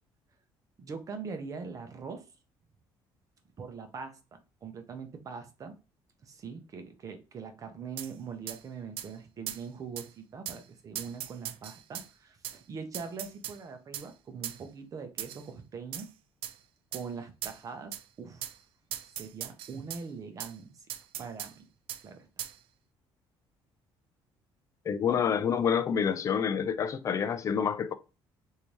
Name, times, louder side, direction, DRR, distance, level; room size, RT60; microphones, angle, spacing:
voice 1, 0.8-2.3 3.6-4.2 4.6-5.7 6.2-16.1 16.9-18.5 19.2-20.9 21.2-21.7 22.0-22.3, right 5 dB, 35° right, 0.8 m, -42 dB
sound 1, 8.0-8.1 8.5-8.6 9.0-9.1 9.5-9.6 10.0-10.1 10.5-10.6 11.0-12.1 12.4-12.6 12.9-13.6 13.9-14.1 14.4-14.6 15.2-15.5 15.9-16.1 16.4-16.6 16.9-17.1 17.4-17.6 17.9-18.0 18.4-18.6 18.9-20.0 20.4-20.5 20.9-21.5 21.9-22.0 22.4-22.6, right 11 dB, 75° right, 0.4 m, -39 dB
voice 2, 24.9-27.9, left 7 dB, 35° left, 0.4 m, -28 dB
3.4 x 2.7 x 3.0 m
cardioid pair, 130°, 9 cm